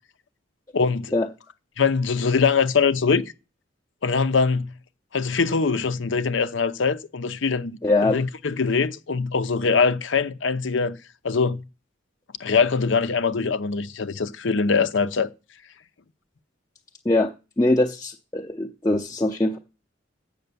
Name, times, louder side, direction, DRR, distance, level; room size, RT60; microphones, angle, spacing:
voice 1, 0.7-1.1 1.8-3.2 4.0-4.7 5.1-10.9 11.2-11.6 12.4-15.3, left 5 dB, 70° left, 0.7 m, -22 dB
voice 2, 7.8-8.2 17.0-17.3 17.6-19.6, left 2 dB, 15° left, 0.6 m, -22 dB
7.9 x 6.6 x 6.8 m
head